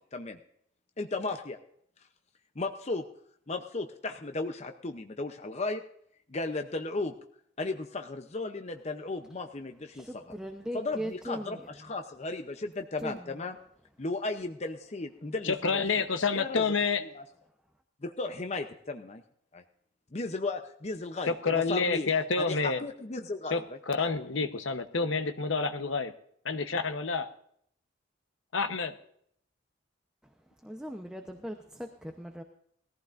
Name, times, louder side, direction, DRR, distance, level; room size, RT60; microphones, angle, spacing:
voice 1, 1.0-1.6 2.6-3.0 3.5-5.8 6.3-7.1 7.6-10.2 10.7-13.5 14.0-16.1 16.3-16.6 17.1-17.2 18.0-19.2 19.5-19.6 20.1-22.1 22.5-23.6 24.1-24.3, left 3 dB, 35° left, 6 dB, 0.7 m, -35 dB
voice 2, 9.9-11.7 13.0-13.3 30.6-32.4, equal, 5° right, 4 dB, 0.8 m, -39 dB
voice 3, 15.4-17.0 21.3-22.8 23.5-26.1 26.4-27.3 28.5-28.9, left 4 dB, 80° left, 9 dB, 1.0 m, -28 dB
20.0 x 15.0 x 2.6 m, 0.67 s
head